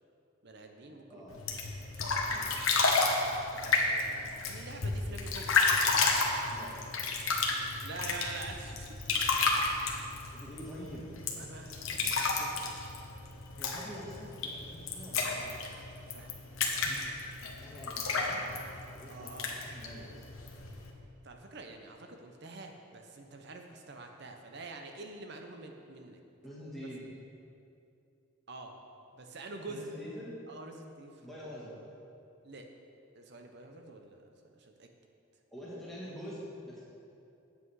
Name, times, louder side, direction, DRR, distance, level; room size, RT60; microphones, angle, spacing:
voice 1, 0.4-1.3 1.9-2.2 3.5-5.8 7.8-9.2 11.3-12.7 16.1-16.4 19.1-19.6 21.2-26.2 28.5-28.7 29.1-29.9 30.5-31.1 32.4-32.6 33.1-34.9, right 2 dB, 55° right, 4 dB, 0.8 m, -47 dB
voice 2, 1.1-1.4 2.3-2.6 6.5-6.7 10.3-11.3 13.6-15.5 17.6-18.5 18.8-20.1 26.4-27.2 29.7-30.3 31.2-31.8 35.5-36.8, equal, ahead, -8 dB, 1.7 m, -45 dB
sound 1, 1.3-20.9, left 4 dB, 85° left, 1.1 m, -32 dB
8.3 x 8.0 x 4.8 m, 2.7 s
head